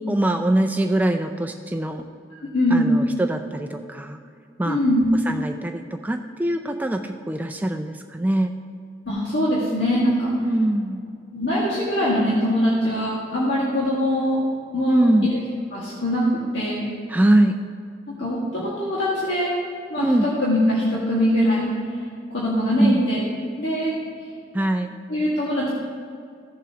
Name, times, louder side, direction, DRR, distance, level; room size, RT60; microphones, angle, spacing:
voice 1, 0.1-2.0 2.7-4.2 4.6-4.8 5.3-8.5 10.4-11.0 14.9-15.3 17.1-17.6 20.0-20.3 22.8-23.0 24.5-24.9, right 1 dB, 10° right, 5 dB, 0.3 m, -22 dB
voice 2, 2.5-2.9 4.6-5.1 9.1-10.3 11.3-14.4 14.7-15.4 15.7-16.2 16.5-16.9 18.2-19.5 19.9-21.7 22.3-23.2 23.6-23.9 25.1-25.7, equal, 85° left, -7 dB, 1.8 m, -22 dB
15.5 x 7.0 x 2.9 m, 2.3 s
head